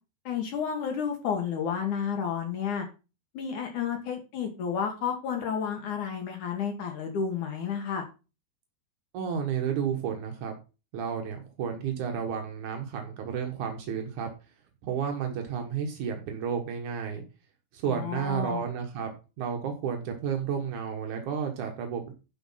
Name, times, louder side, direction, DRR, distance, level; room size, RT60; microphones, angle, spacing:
voice 1, 0.2-2.9 3.3-8.0 17.9-18.6, left 7 dB, 60° left, 4 dB, 2.2 m, -31 dB
voice 2, 9.1-10.5 10.9-14.3 14.8-17.2 17.7-19.1 19.4-22.1, right 7 dB, 75° right, 3 dB, 1.7 m, -32 dB
11.5 x 5.0 x 5.6 m, 0.31 s
omnidirectional pair, 5.5 m